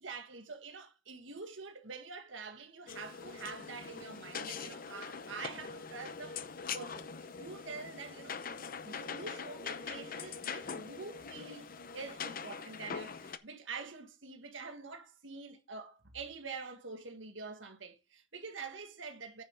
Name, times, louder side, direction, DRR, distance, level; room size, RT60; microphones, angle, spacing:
voice 1, 0.0-6.4 6.7-8.4 8.8-19.4, right 4 dB, 75° right, 1.6 m, -46 dB
sound 1, 2.9-13.4, left 6 dB, 45° left, 0.7 m, -43 dB
9.5 x 5.8 x 5.1 m
head